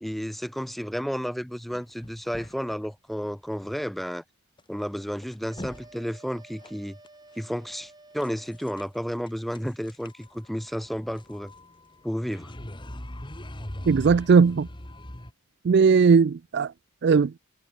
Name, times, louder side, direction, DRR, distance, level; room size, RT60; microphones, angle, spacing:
voice 1, 0.0-4.2 4.7-7.0 7.4-11.5 12.0-12.5, equal, ahead, 1.5 m, -32 dB
sound 1, 1.7-2.9 3.6-3.8 4.0-4.1 4.6-4.7 5.1-5.9 6.2-6.3 6.6-7.1 8.2-9.0 9.3-15.3, left 1 dB, 20° left, 2.1 m, -41 dB
sound 2, 5.5-9.0, right 2 dB, 20° right, 3.9 m, -52 dB
voice 2, 13.9-14.7 15.6-16.7 17.0-17.3, right 5 dB, 50° right, 0.4 m, -18 dB
head